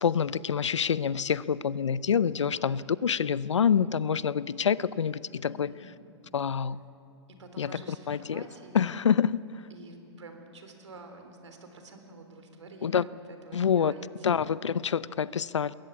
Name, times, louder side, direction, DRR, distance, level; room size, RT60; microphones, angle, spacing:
voice 1, 0.0-5.7 6.3-6.8 7.6-7.8 8.1-8.4 8.7-9.4 12.8-13.0 13.5-13.9 14.2-15.7, left 7 dB, 90° left, 19 dB, 0.6 m, -26 dB
voice 2, 2.3-2.8 5.4-5.9 7.3-8.9 9.7-15.0, right 2 dB, 85° right, 6 dB, 3.6 m, -49 dB
21.0 x 18.5 x 8.4 m, 2.8 s
hypercardioid pair, 120°, 15 cm